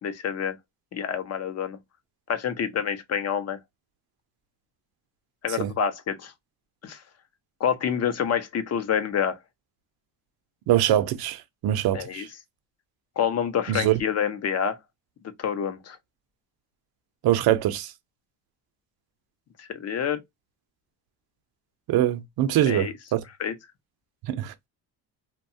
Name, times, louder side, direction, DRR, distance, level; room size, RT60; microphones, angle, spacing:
voice 1, 0.0-0.6 0.9-1.8 2.3-3.6 5.4-6.3 6.8-7.0 7.6-9.4 11.9-12.3 13.2-14.8 15.4-16.0 19.6-20.2 22.7-22.9 23.4-23.5, left 8 dB, 40° left, 0.6 m, -27 dB
voice 2, 10.7-12.3 13.7-14.0 17.2-17.9 21.9-23.2 24.2-24.5, right 12 dB, 65° right, 0.6 m, -23 dB
2.8 x 2.2 x 2.6 m
cardioid pair, 115°, 40 cm